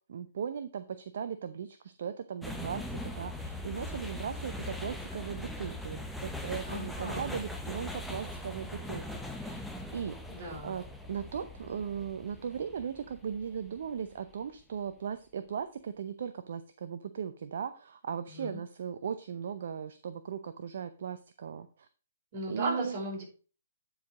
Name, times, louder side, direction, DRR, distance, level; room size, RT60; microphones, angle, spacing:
voice 1, 0.1-9.6 9.9-10.2 10.6-21.9 22.5-23.0, right 7 dB, 60° right, 11 dB, 0.7 m, -38 dB
sound 1, 2.4-14.5, left 1 dB, ahead, 0.9 m, -41 dB
voice 2, 6.7-7.4 10.3-10.7 18.3-18.6 22.3-23.2, right 1 dB, 45° right, -3 dB, 5.4 m, -36 dB
10.0 x 4.8 x 5.0 m, 0.37 s
figure-of-eight pair, 130°, 0 cm